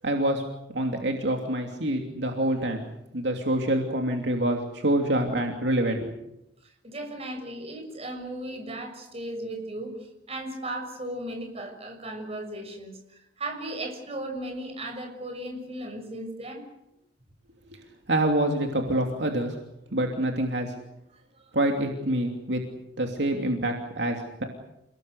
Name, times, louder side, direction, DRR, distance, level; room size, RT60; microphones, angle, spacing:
voice 1, 0.0-0.4 0.7-2.8 3.1-6.1 18.1-19.6 19.9-20.7 21.5-22.6 23.0-24.4, right 1 dB, 65° right, 3 dB, 3.0 m, -26 dB
voice 2, 6.6-16.6 21.3-21.5, right 1 dB, 35° right, 4 dB, 6.6 m, -36 dB
29.5 x 19.0 x 8.2 m, 0.85 s
head